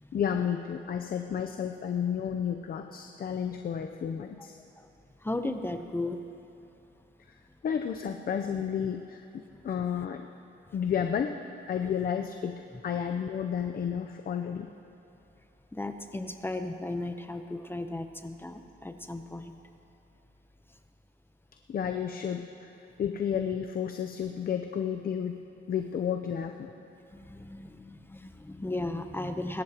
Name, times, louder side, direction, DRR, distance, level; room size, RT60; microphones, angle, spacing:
voice 1, 0.1-4.6 7.6-9.3 9.6-10.3 10.7-11.4 11.7-14.7 21.7-22.7 23.0-25.4 25.7-26.7, left 8 dB, 50° left, 5 dB, 0.7 m, -31 dB
voice 2, 5.2-6.3 15.7-19.5 27.1-29.6, left 2 dB, 10° left, 7 dB, 0.8 m, -35 dB
24.5 x 13.0 x 3.0 m, 2.9 s
cardioid pair, 90°, 20 cm